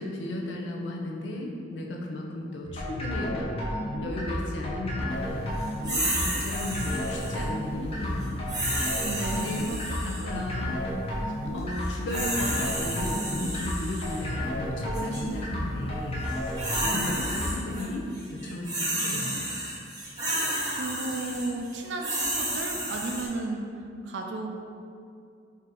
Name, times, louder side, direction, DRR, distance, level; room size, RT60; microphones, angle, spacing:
voice 1, 0.0-3.5 4.0-5.5 5.9-8.5 9.3-9.7 10.0-10.9 11.5-16.3 16.7-18.1 18.3-19.4, left 1 dB, 90° left, 0 dB, 0.5 m, -35 dB
sound 1, 2.6-17.6, left 1 dB, 30° left, 0.7 m, -32 dB
sound 2, 5.8-7.4 8.5-10.3 11.8-14.2 14.9-15.2 16.2-17.8 18.1-23.3, right 1 dB, 25° right, 0.9 m, -31 dB
voice 2, 9.0-10.4 20.7-23.6 24.0-24.5, right 2 dB, 75° right, 2 dB, 0.4 m, -34 dB
3.6 x 2.7 x 3.7 m, 2.4 s
head